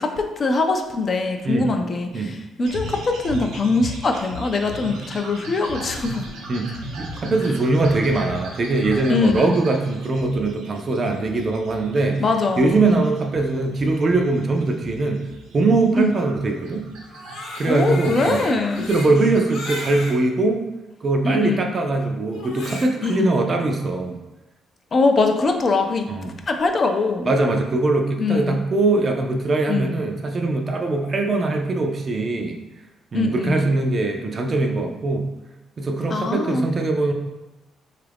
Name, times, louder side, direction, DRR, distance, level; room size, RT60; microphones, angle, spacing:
voice 1, 0.0-6.2 9.1-9.5 12.2-13.0 16.0-16.1 17.7-18.9 21.2-21.7 23.0-23.3 24.9-26.1 26.5-27.3 28.2-28.6 29.7-29.9 33.1-33.7 36.1-36.7, left 3 dB, 35° left, 4 dB, 0.4 m, -22 dB
sound 1, 2.6-19.9, right 1 dB, 85° right, 0.6 m, -37 dB
voice 2, 6.5-12.2 12.6-15.3 15.5-16.9 17.6-18.5 18.8-20.6 21.0-24.2 26.1-26.4 27.2-32.6 33.1-35.3 35.8-37.1, right 3 dB, 35° right, 3 dB, 0.4 m, -21 dB
Crying sobbing, 17.0-20.2 20.9-21.0 22.3-23.2, left 2 dB, 85° left, 0.8 m, -35 dB
3.7 x 2.4 x 3.4 m, 1.0 s
cardioid pair, 120°, 0 cm